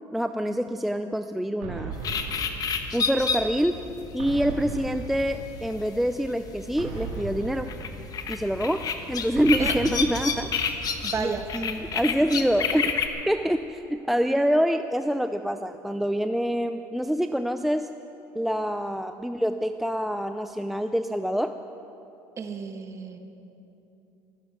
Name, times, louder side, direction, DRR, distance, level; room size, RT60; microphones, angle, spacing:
voice 1, 0.1-1.9 2.3-2.4 2.9-3.9 4.1-7.7 8.3-10.8 11.2-12.9 13.3-17.9 18.3-21.5, equal, ahead, 8 dB, 0.4 m, -26 dB
sound 1, 1.6-3.4 4.2-5.9 6.8-8.6 9.4-11.1, right 4 dB, 85° right, 2.5 m, -37 dB
sound 2, 1.9-13.1, left 6 dB, 45° left, 1.3 m, -31 dB
voice 2, 11.0-11.5 22.4-23.2, right 6 dB, 30° right, 6 dB, 1.5 m, -32 dB
16.0 x 14.0 x 6.0 m, 3.0 s
supercardioid pair, 105°, 9 cm